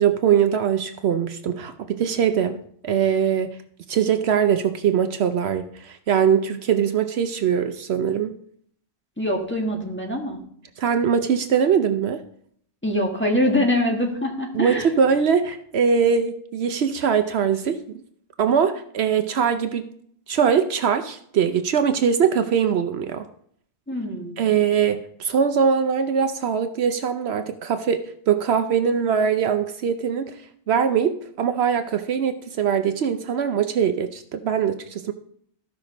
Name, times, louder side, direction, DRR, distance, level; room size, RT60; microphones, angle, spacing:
voice 1, 0.0-3.5 3.9-8.3 10.8-12.2 14.5-17.8 18.4-19.8 20.3-23.2 24.4-28.0 28.3-30.3 30.7-35.1, right 7 dB, 70° right, 9 dB, 0.9 m, -22 dB
voice 2, 9.2-10.4 12.8-14.9 23.9-24.4, left 1 dB, 10° left, 0 dB, 1.6 m, -24 dB
14.5 x 5.8 x 3.9 m, 0.65 s
omnidirectional pair, 1.2 m